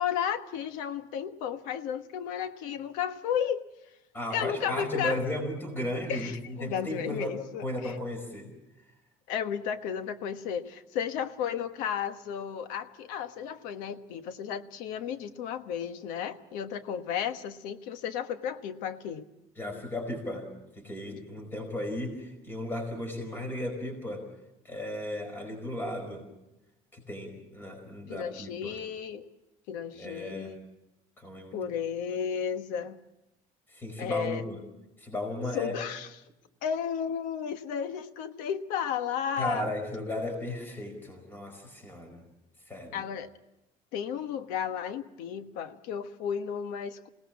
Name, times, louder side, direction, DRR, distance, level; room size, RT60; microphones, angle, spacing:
voice 1, 0.0-3.6 4.3-5.2 6.1-7.9 9.3-19.3 28.1-29.2 29.7-30.6 31.5-33.0 34.0-34.4 35.5-36.1 36.6-39.7 42.9-43.3 43.9-47.1, left 8 dB, 90° left, 10 dB, 1.4 m, -33 dB
voice 2, 4.1-7.3 7.6-8.5 19.6-20.5 20.7-24.2 24.6-26.2 26.9-28.7 29.9-30.6 31.2-31.6 33.7-34.6 35.0-35.7 39.4-42.2 42.7-43.0, left 1 dB, 15° left, 4 dB, 5.0 m, -35 dB
28.0 x 18.5 x 7.4 m, 0.94 s
cardioid pair, 165°, 13 cm